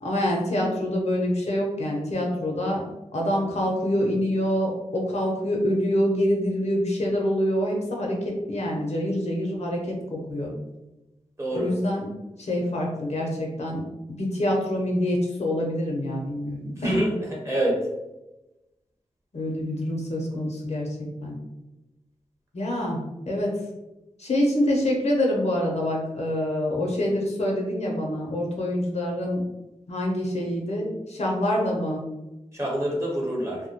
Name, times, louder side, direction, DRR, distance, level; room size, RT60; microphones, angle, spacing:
voice 1, 0.0-2.8 3.1-10.5 11.5-12.1 12.4-13.8 14.1-17.0 19.3-20.9 21.2-21.4 22.5-23.0 23.3-23.5 24.2-29.4 29.9-32.0, left 1 dB, 60° left, -1 dB, 0.6 m, -26 dB
voice 2, 16.8-17.1 17.4-17.8 32.5-33.6, right 1 dB, 20° right, -4 dB, 0.9 m, -26 dB
2.2 x 2.1 x 2.8 m, 0.99 s
cardioid pair, 50°, 12 cm